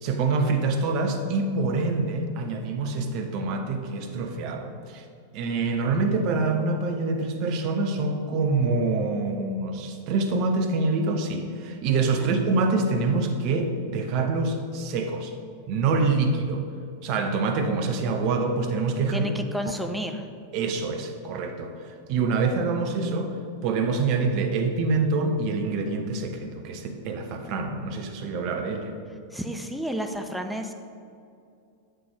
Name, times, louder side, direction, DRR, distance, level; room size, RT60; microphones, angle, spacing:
voice 1, 0.0-5.0 5.3-15.3 15.7-16.7 17.0-19.3 20.5-23.3 23.6-28.9, right 3 dB, 45° right, 5 dB, 0.9 m, -26 dB
voice 2, 19.1-20.3 29.3-30.7, equal, ahead, 4 dB, 0.6 m, -31 dB
7.9 x 7.7 x 3.5 m, 2.5 s
figure-of-eight pair, 90°, 0 cm